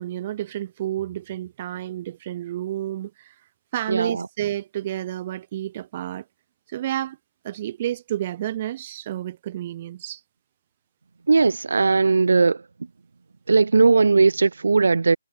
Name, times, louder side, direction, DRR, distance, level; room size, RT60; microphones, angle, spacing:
voice 1, 0.0-3.4 3.7-6.2 6.7-7.2 7.4-10.2, right 12 dB, 15° right, 2.4 m, -30 dB
voice 2, 3.9-4.2 11.3-12.6 13.5-15.2, right 4 dB, 55° right, 4.3 m, -18 dB
hypercardioid pair, 180°, 0 cm